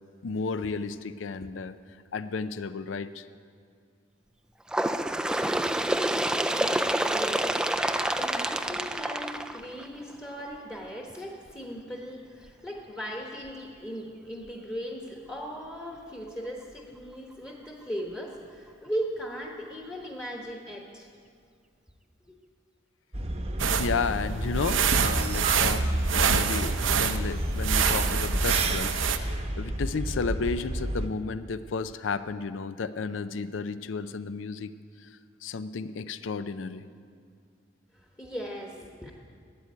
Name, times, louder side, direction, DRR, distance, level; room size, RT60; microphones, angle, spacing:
voice 1, 0.2-1.7 2.1-3.3 23.7-34.7 35.0-35.1 35.4-36.8, left 4 dB, 80° left, 13 dB, 0.5 m, -33 dB
Bird, 4.7-10.1 11.0-11.1 11.5-11.6 12.5-12.6 13.5-13.6 14.5-14.6, right 1 dB, 5° right, 0.3 m, -28 dB
voice 2, 6.5-21.1 37.9-39.1, equal, 15° left, -1 dB, 1.2 m, -38 dB
sound 1, 23.1-31.1, right 1 dB, 30° right, 0.9 m, -30 dB
sound 2, 23.6-29.2, right 7 dB, 80° right, 0.7 m, -27 dB
13.0 x 8.9 x 9.6 m, 2.2 s
head